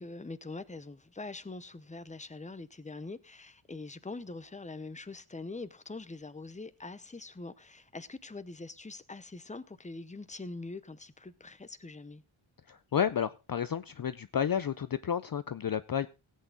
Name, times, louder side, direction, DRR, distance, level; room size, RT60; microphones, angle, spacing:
voice 1, 0.0-12.2, left 3 dB, 15° left, 0.8 m, -43 dB
voice 2, 12.7-16.1, left 8 dB, 45° left, 0.5 m, -31 dB
17.0 x 8.5 x 3.9 m
wide cardioid pair, 95°, 49 cm